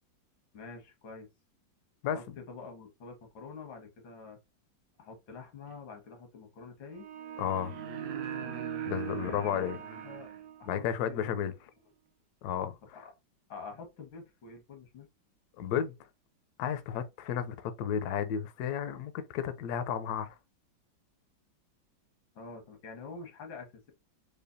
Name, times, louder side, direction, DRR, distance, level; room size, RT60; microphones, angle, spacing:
voice 1, 0.5-1.3 2.0-4.4 5.0-7.1 9.2-10.3 10.6-11.5 12.9-13.1 13.5-15.1 22.4-23.9, left 4 dB, 90° left, 2.0 m, -47 dB
voice 2, 2.0-2.3 7.4-7.8 8.9-9.8 10.6-11.5 12.4-12.8 15.6-15.9 16.6-20.3, left 9 dB, 70° left, 1.0 m, -32 dB
sound 1, 5.7-5.8 7.5-10.4 12.5-12.6, right 6 dB, 75° right, 1.4 m, -45 dB
sound 2, 6.9-10.9, right 9 dB, 60° right, 0.8 m, -40 dB
5.0 x 2.2 x 2.6 m
omnidirectional pair, 2.1 m